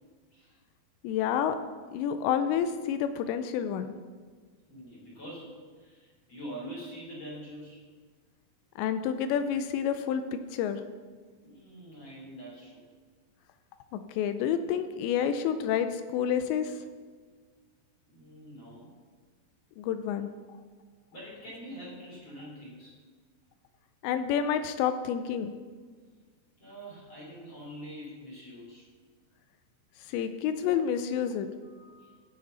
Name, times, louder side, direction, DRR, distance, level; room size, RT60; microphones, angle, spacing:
voice 1, 1.0-1.6 1.9-3.9 8.8-10.8 13.9-16.8 19.8-20.3 24.0-25.5 30.1-31.5, left 8 dB, 80° left, 10 dB, 2.7 m, -29 dB
voice 2, 4.7-7.8 11.4-12.9 18.1-18.9 21.1-22.9 26.6-28.9 31.6-32.2, equal, 30° left, -5 dB, 4.1 m, -45 dB
15.5 x 6.9 x 4.1 m, 1.5 s
omnidirectional pair, 5.3 m